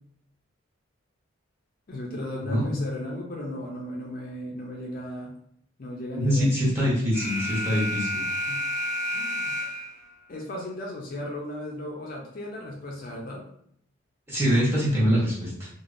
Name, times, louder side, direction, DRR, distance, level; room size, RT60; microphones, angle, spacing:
voice 1, 1.9-5.3 5.8-6.5 8.5-8.6 9.1-9.7 10.3-13.4, left 1 dB, 45° left, -1 dB, 0.4 m, -35 dB
voice 2, 6.1-8.2 14.3-15.7, equal, 10° right, -8 dB, 1.0 m, -24 dB
Alarm, 7.1-10.1, equal, 45° right, 1.3 m, -30 dB
3.3 x 2.0 x 2.5 m, 0.68 s
head